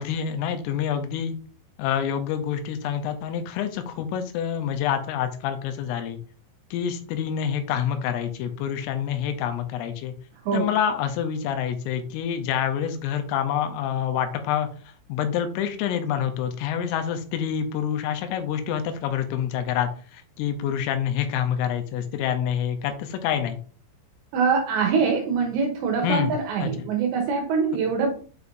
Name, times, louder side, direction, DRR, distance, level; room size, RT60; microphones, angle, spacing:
voice 1, 0.0-1.4 1.8-6.2 6.7-10.1 10.5-14.7 15.1-23.6 26.0-26.4 26.6-26.7, left 9 dB, 85° left, 7 dB, 3.3 m, -27 dB
voice 2, 24.3-28.1, right 5 dB, 75° right, 2 dB, 2.8 m, -23 dB
8.2 x 4.8 x 2.6 m, 0.41 s
omnidirectional pair, 5.9 m